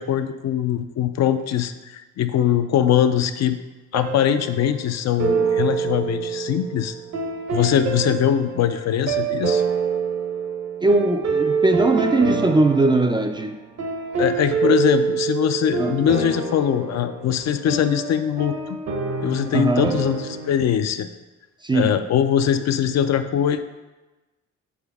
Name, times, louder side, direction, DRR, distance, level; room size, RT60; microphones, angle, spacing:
voice 1, 0.0-3.6 3.9-6.9 7.5-9.6 14.2-18.8 19.2-21.1 21.7-23.6, left 9 dB, 60° left, 9 dB, 0.5 m, -22 dB
sound 1, 3.9-4.8 5.2-20.5, right 5 dB, 60° right, 1.0 m, -26 dB
voice 2, 10.8-13.6 15.8-16.0 19.5-20.0 21.6-22.0, right 2 dB, 15° right, 6 dB, 0.3 m, -20 dB
7.1 x 4.0 x 3.5 m, 1.1 s
cardioid pair, 90°, 30 cm